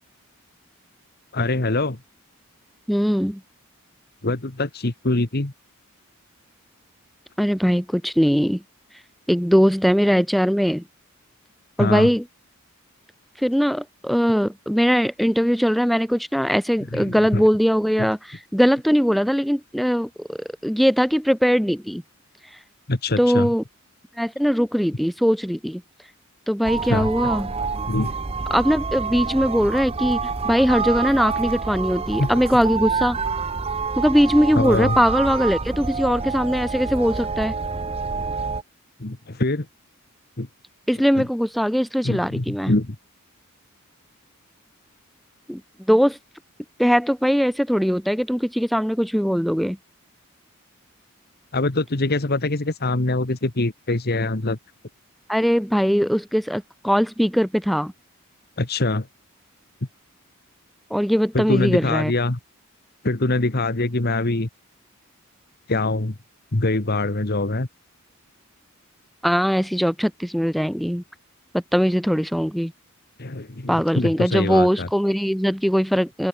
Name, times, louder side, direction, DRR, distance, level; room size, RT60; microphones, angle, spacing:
voice 1, 1.3-2.0 4.2-5.5 11.8-12.1 16.9-17.4 18.0-18.1 22.9-23.5 26.9-27.1 27.9-28.1 32.2-32.3 34.5-34.9 39.0-39.7 40.4-40.5 41.1-41.2 42.0-42.9 51.5-54.6 58.6-59.1 61.3-62.4 63.0-64.5 65.7-66.1 66.5-67.7 73.2-74.9, left 2 dB, 45° left, 1.5 m, -23 dB
voice 2, 2.9-3.4 7.4-8.6 9.3-10.8 11.8-12.2 13.4-22.0 23.2-23.6 24.2-25.8 26.5-27.5 28.5-30.2 30.4-33.2 34.0-37.5 40.9-42.7 45.5-46.2 46.8-49.8 55.3-57.9 60.9-62.1 69.2-71.0 71.5-72.7 73.7-76.3, equal, ahead, 3.0 m, -20 dB
sound 1, 26.6-38.6, right 4 dB, 25° right, 0.7 m, -27 dB
open air
head